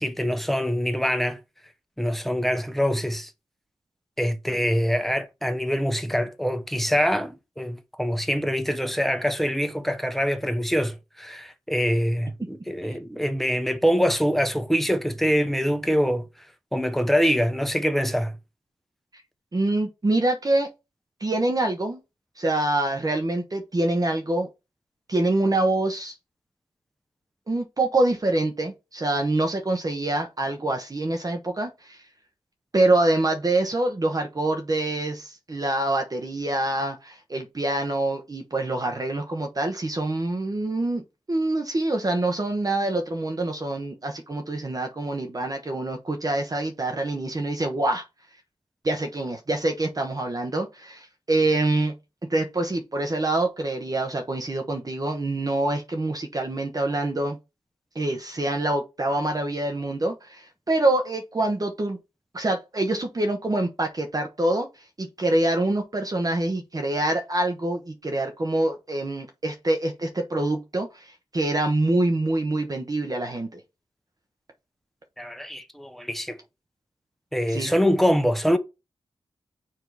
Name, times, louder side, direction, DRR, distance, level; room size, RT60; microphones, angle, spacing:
voice 1, 0.0-1.4 2.0-3.3 4.2-16.2 16.7-18.3 75.2-76.4 77.3-78.6, equal, ahead, 0.9 m, -24 dB
voice 2, 19.5-20.7 21.2-22.0 22.4-24.5 25.1-26.1 27.5-32.0 32.7-48.0 48.8-51.9 52.3-57.4 57.9-62.0 62.3-64.7 65.0-73.6 77.5-77.7, right 2 dB, 35° right, 0.9 m, -25 dB
7.0 x 2.9 x 4.7 m
cardioid pair, 50°, 11 cm